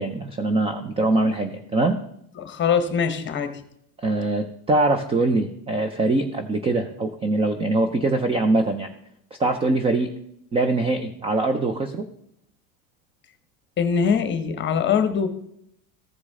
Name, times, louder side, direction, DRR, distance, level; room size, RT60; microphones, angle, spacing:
voice 1, 0.0-2.0 4.0-8.9 9.4-10.1 10.5-12.1, right 2 dB, 15° right, 7 dB, 0.4 m, -23 dB
voice 2, 2.4-3.6 13.8-15.3, left 6 dB, 25° left, 9 dB, 1.1 m, -22 dB
14.5 x 4.9 x 3.6 m, 0.72 s
supercardioid pair, 130°, 45 cm